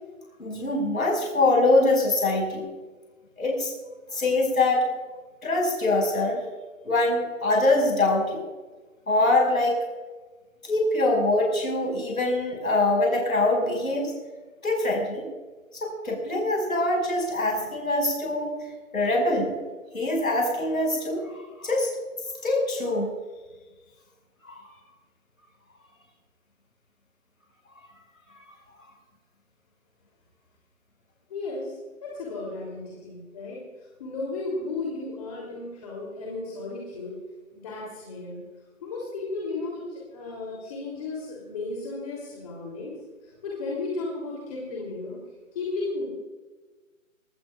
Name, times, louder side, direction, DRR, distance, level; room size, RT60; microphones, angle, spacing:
voice 1, 0.4-2.6 3.4-3.7 4.1-4.9 5.4-6.4 6.8-8.4 9.1-9.8 10.6-14.1 14.6-15.3 15.7-18.5 18.9-19.5 19.9-21.2 21.6-21.9 22.4-23.1 24.5-24.6, left 2 dB, 85° left, 0 dB, 5.7 m, -23 dB
voice 2, 31.3-33.6 34.0-37.2 37.5-38.4 38.8-42.9 43.2-45.2 45.5-46.1, left 3 dB, 25° left, -3 dB, 3.2 m, -34 dB
20.5 x 19.0 x 2.4 m, 1.3 s
figure-of-eight pair, 160°, 41 cm